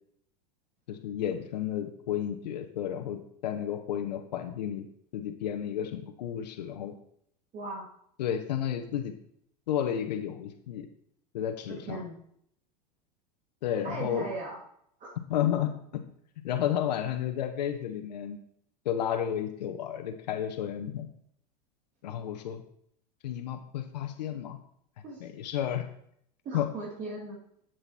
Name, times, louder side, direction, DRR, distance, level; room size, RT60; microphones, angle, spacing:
voice 1, 0.9-4.9 5.1-6.9 8.2-9.1 9.7-10.9 11.3-12.0 13.6-14.3 15.3-16.0 16.4-18.4 18.8-21.1 22.0-22.6 23.2-24.6 25.2-25.9 26.5-26.7, left 10 dB, 90° left, 6 dB, 1.0 m, -32 dB
voice 2, 7.5-7.9 11.7-12.2 13.8-14.6 15.0-15.1 25.0-25.2 26.4-27.4, right 2 dB, 35° right, -3 dB, 2.3 m, -38 dB
8.0 x 7.8 x 4.2 m, 0.69 s
supercardioid pair, 120°, 21 cm